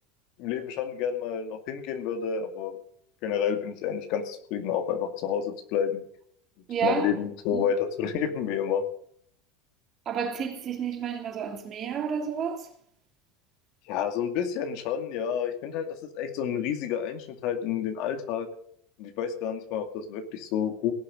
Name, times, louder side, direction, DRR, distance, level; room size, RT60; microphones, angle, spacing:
voice 1, 0.4-2.8 3.2-6.0 6.8-8.8 13.9-15.9 16.1-18.5 19.0-20.9, left 8 dB, 60° left, 2.3 m, -29 dB
voice 2, 6.7-7.1 7.5-7.7 10.0-12.7, right 7 dB, 35° right, 3.0 m, -30 dB
18.0 x 6.9 x 7.7 m
supercardioid pair, 125°, 0 cm